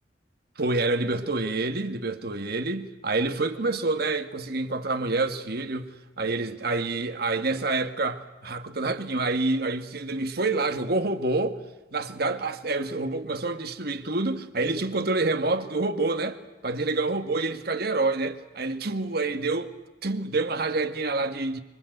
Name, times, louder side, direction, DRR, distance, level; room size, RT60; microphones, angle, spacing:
voice 1, 0.6-11.6 11.9-16.4 16.6-19.7 20.0-21.6, right 3 dB, 60° right, 1.9 m, -27 dB
26.0 x 24.5 x 8.1 m
head